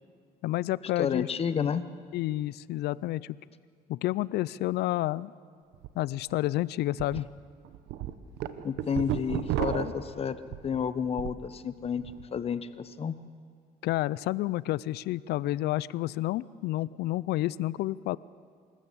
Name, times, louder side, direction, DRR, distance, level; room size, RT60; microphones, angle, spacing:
voice 1, 0.4-1.3 1.6-1.7 2.1-3.4 3.9-5.3 6.0-7.3 9.8-9.9 13.8-18.2, left 16 dB, 75° left, 21 dB, 0.5 m, -30 dB
voice 2, 1.0-1.8 8.6-10.4 10.6-13.1, left 7 dB, 35° left, 13 dB, 0.9 m, -31 dB
sound 1, 5.7-5.9 6.3-6.4 7.0-7.2 7.6-11.5 11.8-12.2, right 11 dB, 85° right, 1.0 m, -33 dB
25.5 x 14.0 x 8.4 m, 2.1 s
cardioid pair, 110°, 17 cm